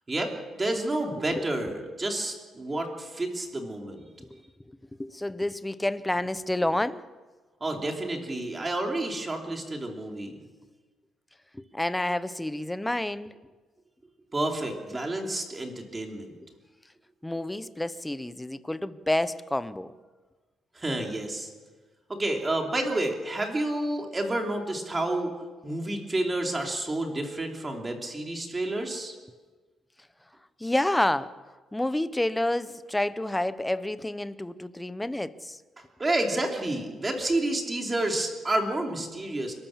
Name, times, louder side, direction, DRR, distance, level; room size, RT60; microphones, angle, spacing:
voice 1, 0.1-4.0 7.6-10.3 14.3-16.4 20.7-21.5 22.1-25.3 25.6-29.1 36.0-39.5, right 2 dB, 15° right, 2.9 m, -30 dB
voice 2, 4.7-7.0 11.5-13.3 17.2-19.9 30.6-31.3 31.7-35.6, left 1 dB, 5° left, 0.6 m, -29 dB
29.5 x 13.0 x 7.3 m
cardioid pair, 165°, 0 cm